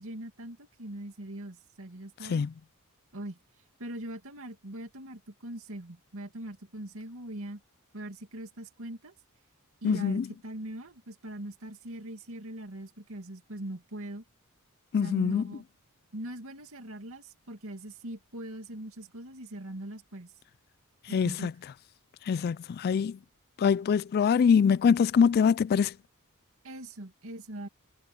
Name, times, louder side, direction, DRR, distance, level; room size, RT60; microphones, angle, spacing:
voice 1, 0.0-2.4 3.1-3.4 3.8-7.6 7.9-9.1 9.8-14.2 15.0-15.6 16.1-20.3 21.1-21.5 26.6-27.7, right 1 dB, 65° right, 2.4 m, -41 dB
voice 2, 9.8-10.2 14.9-15.4 21.1-21.5 22.3-23.2 23.6-25.9, left 6 dB, 45° left, 0.3 m, -24 dB
head